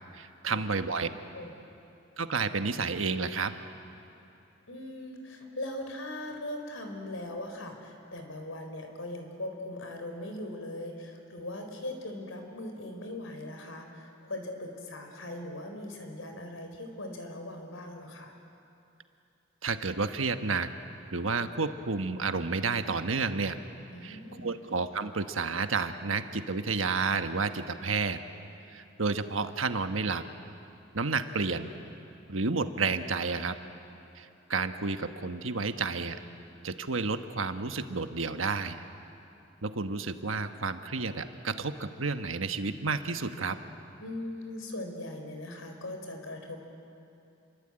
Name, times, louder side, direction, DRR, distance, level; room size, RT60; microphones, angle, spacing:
voice 1, 0.1-1.1 2.2-3.5 19.6-20.7 21.1-23.6 24.0-28.2 28.7-30.2 30.9-31.7 32.3-33.6 34.1-36.2 36.6-38.8 39.6-43.6, right 4 dB, 85° right, 8 dB, 1.3 m, -31 dB
voice 2, 4.7-18.3 23.9-24.5 44.0-46.6, left 1 dB, 90° left, 5 dB, 4.3 m, -40 dB
29.0 x 23.0 x 8.9 m, 2.7 s
head